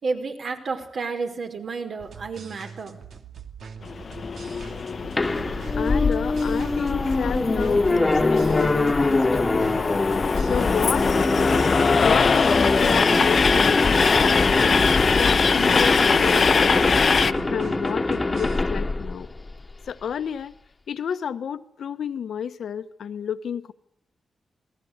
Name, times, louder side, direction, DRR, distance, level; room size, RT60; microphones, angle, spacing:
voice 1, 0.0-3.0, right 4 dB, 60° right, 5.2 m, -31 dB
sound 1, 2.0-18.6, right 6 dB, 80° right, 2.5 m, -43 dB
Train, 3.8-17.3, left 5 dB, 50° left, 1.0 m, -23 dB
sound 2, 5.2-19.9, left 2 dB, 20° left, 1.6 m, -23 dB
voice 2, 5.8-9.9 10.4-11.1 12.0-14.9 15.2-17.0 17.5-19.3 19.9-20.6 20.9-23.7, left 8 dB, 85° left, 1.4 m, -31 dB
28.0 x 20.0 x 8.3 m
wide cardioid pair, 130°, 0 cm